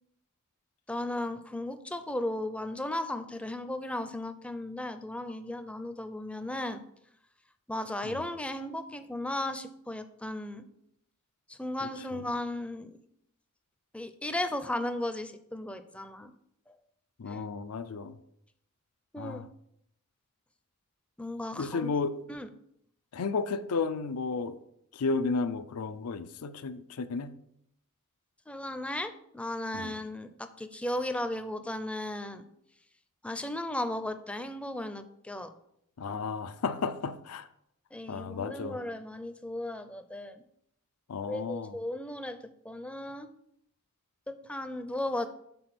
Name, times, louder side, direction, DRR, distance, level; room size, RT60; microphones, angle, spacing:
voice 1, 0.9-6.8 7.7-10.7 11.5-13.0 13.9-16.3 17.3-17.4 19.1-19.4 21.2-21.9 22.3-22.5 28.5-32.5 33.2-35.5 37.9-40.4 41.3-42.4 42.6-43.3 44.3-45.3, left 1 dB, 5° left, 0.5 m, -35 dB
voice 2, 17.2-18.2 19.2-19.5 21.5-22.2 23.1-24.6 24.9-27.3 29.7-29.9 36.0-37.5 38.1-38.8 41.1-41.8, left 4 dB, 85° left, 0.5 m, -33 dB
6.9 x 4.1 x 5.9 m
head